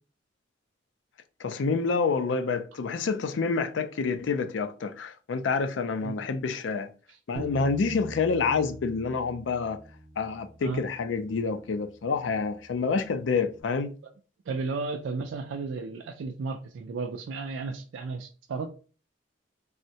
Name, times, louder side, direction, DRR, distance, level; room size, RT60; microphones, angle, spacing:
voice 1, 1.4-6.9 7.3-9.8 10.2-13.9, left 4 dB, 80° left, 0.4 m, -28 dB
Bass guitar, 7.4-13.6, equal, ahead, 0.5 m, -46 dB
voice 2, 14.5-18.7, right 4 dB, 85° right, 0.4 m, -33 dB
3.4 x 2.1 x 2.7 m
head